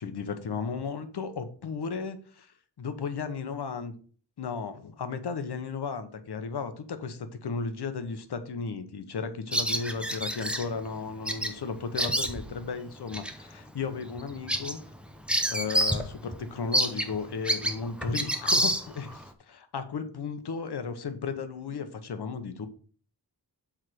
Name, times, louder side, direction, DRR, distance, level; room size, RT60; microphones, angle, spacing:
voice 1, 0.0-3.9 4.4-14.8 15.5-22.7, left 5 dB, 65° left, 9 dB, 1.1 m, -35 dB
Bird vocalization bird call bird song, 9.5-10.6 11.3-11.5 11.8-12.6 13.1-13.3 13.8-13.9 14.2-16.1 16.3-16.4 16.7-19.2, right 1 dB, ahead, 0.8 m, -28 dB
7.7 x 3.8 x 6.2 m, 0.42 s
wide cardioid pair, 115°, 42 cm